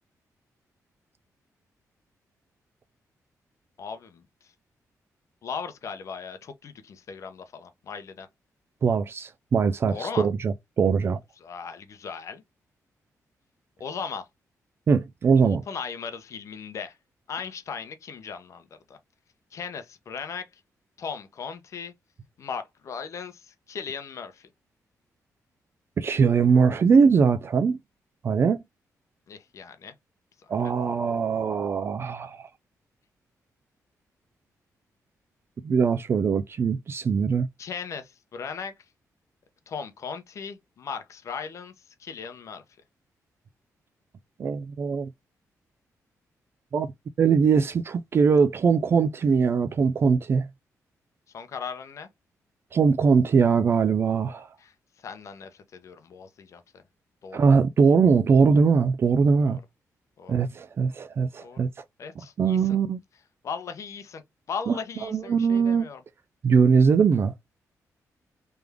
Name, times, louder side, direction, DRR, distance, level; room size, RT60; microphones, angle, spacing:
voice 1, 3.8-4.2 5.4-8.3 9.9-10.3 11.4-12.4 13.8-14.3 15.4-17.0 17.3-19.0 19.5-20.5 21.0-21.9 22.4-24.5 29.3-29.9 30.4-30.5 37.6-38.7 39.7-41.7 42.0-42.6 51.3-52.1 54.6-54.7 55.0-56.8 57.2-57.4 59.5-59.6 60.2-60.4 61.4-61.6 62.0-62.8 63.4-64.2 64.5-66.0, left 6 dB, 55° left, 0.8 m, -37 dB
voice 2, 8.8-11.2 14.9-15.6 26.0-27.8 28.2-28.6 30.5-32.5 35.6-37.5 44.4-45.1 46.7-46.9 47.2-50.5 52.7-54.5 57.3-59.6 60.3-61.7 62.4-63.0 64.7-64.8 65.0-65.9 66.4-67.3, right 5 dB, 40° right, 0.3 m, -21 dB
3.4 x 3.4 x 3.4 m
wide cardioid pair, 135°, 6 cm